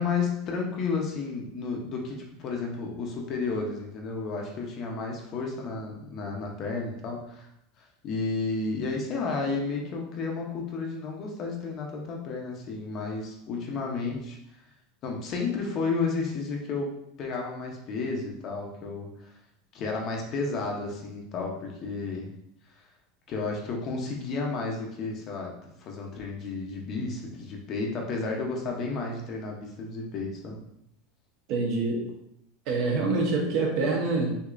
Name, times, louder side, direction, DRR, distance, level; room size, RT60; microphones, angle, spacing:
voice 1, 0.0-7.5 7.8-14.4 15.0-19.3 19.7-22.3 23.3-25.5 25.8-30.6, left 4 dB, 30° left, 0 dB, 0.7 m, -32 dB
voice 2, 31.5-32.0 32.7-34.4, right 3 dB, 45° right, 0 dB, 1.0 m, -26 dB
6.3 x 2.8 x 2.5 m, 0.78 s
supercardioid pair, 165°, 0 cm